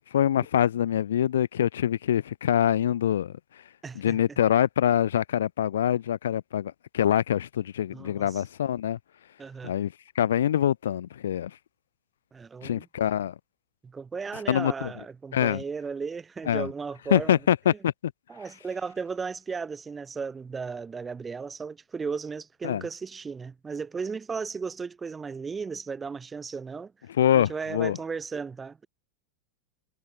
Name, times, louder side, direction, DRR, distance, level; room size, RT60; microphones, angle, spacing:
voice 1, 0.1-3.3 3.9-9.0 9.6-11.5 12.6-13.3 14.5-14.9 15.3-15.6 16.5-16.7 17.1-17.9 22.6-22.8 27.2-28.0, left 10 dB, 60° left, 1.1 m, -24 dB
voice 2, 3.8-4.4 7.9-8.4 9.4-9.7 12.3-12.9 13.8-17.4 17.7-17.8 18.3-26.9 27.3-28.9, right 5 dB, 15° right, 4.4 m, -35 dB
figure-of-eight pair, 90°, 0 cm